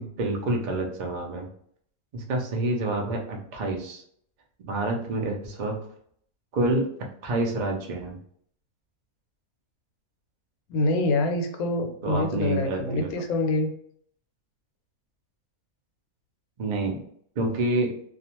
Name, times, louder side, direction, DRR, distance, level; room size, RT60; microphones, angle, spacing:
voice 1, 0.0-1.5 2.1-4.0 4.7-5.8 6.5-6.9 7.2-8.2 12.0-13.1 16.6-17.0 17.4-17.9, right 2 dB, 60° right, 1 dB, 0.4 m, -28 dB
voice 2, 10.7-13.7, left 2 dB, 80° left, 4 dB, 1.0 m, -25 dB
2.4 x 2.3 x 2.8 m, 0.63 s
omnidirectional pair, 1.5 m